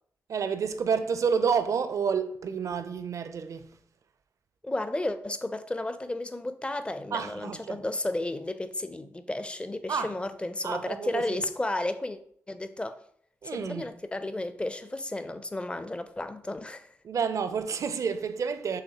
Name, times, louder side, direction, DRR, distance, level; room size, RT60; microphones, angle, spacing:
voice 1, 0.3-3.8 7.1-7.8 9.9-10.1 10.6-11.4 13.4-13.9 17.0-18.8, right 6 dB, 60° right, 0.4 m, -29 dB
voice 2, 4.6-12.2 12.5-13.0 13.4-17.0, left 2 dB, 20° left, 0.5 m, -33 dB
6.4 x 2.6 x 2.8 m
supercardioid pair, 50°, 6 cm